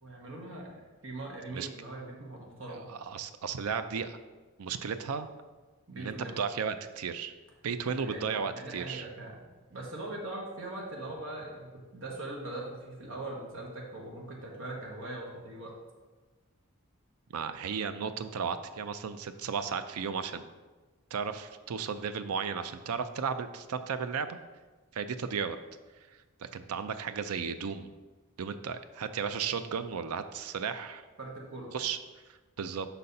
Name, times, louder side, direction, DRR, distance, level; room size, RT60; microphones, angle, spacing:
voice 1, 0.0-2.9 5.9-6.4 8.0-15.7 31.2-31.8, right 2 dB, 60° right, -2 dB, 1.2 m, -41 dB
voice 2, 2.9-4.2 4.6-5.3 5.9-7.3 7.6-9.1 17.3-20.4 21.1-24.4 24.9-25.6 26.4-27.9 28.4-31.0 31.7-32.0 32.3-32.9, right 6 dB, 85° right, 10 dB, 0.5 m, -34 dB
5.6 x 4.2 x 5.3 m, 1.3 s
head